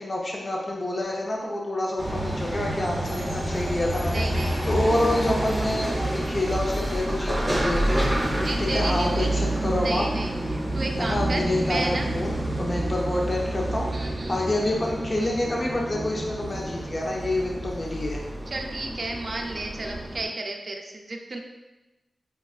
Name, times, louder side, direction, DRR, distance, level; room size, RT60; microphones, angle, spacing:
voice 1, 0.0-10.0 11.0-18.2, left 1 dB, 40° left, -2 dB, 0.5 m, -28 dB
sound 1, 2.0-20.2, right 1 dB, 15° right, 0.8 m, -28 dB
voice 2, 4.1-4.6 8.4-9.3 9.8-12.1 13.9-14.4 18.5-21.4, right 2 dB, 50° right, 2 dB, 0.4 m, -32 dB
5.2 x 2.3 x 2.3 m, 1.1 s
wide cardioid pair, 100°, 0 cm